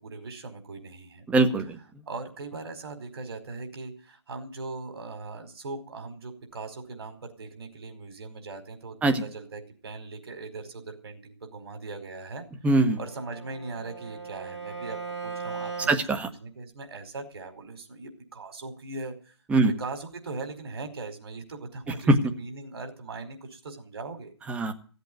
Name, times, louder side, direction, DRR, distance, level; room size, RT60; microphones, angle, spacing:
voice 1, 0.0-1.2 2.1-12.5 13.0-16.0 16.4-19.3 19.8-24.3, right 3 dB, 60° right, 6 dB, 4.8 m, -40 dB
voice 2, 1.3-1.8 9.0-9.2 12.6-13.0 15.9-16.3 19.5-19.7 22.1-22.2 24.5-24.7, right 2 dB, 10° right, 8 dB, 1.3 m, -21 dB
Bowed string instrument, 12.8-16.0, right 5 dB, 90° right, 4.8 m, -38 dB
16.5 x 8.3 x 9.3 m, 0.41 s
figure-of-eight pair, 135°, 15 cm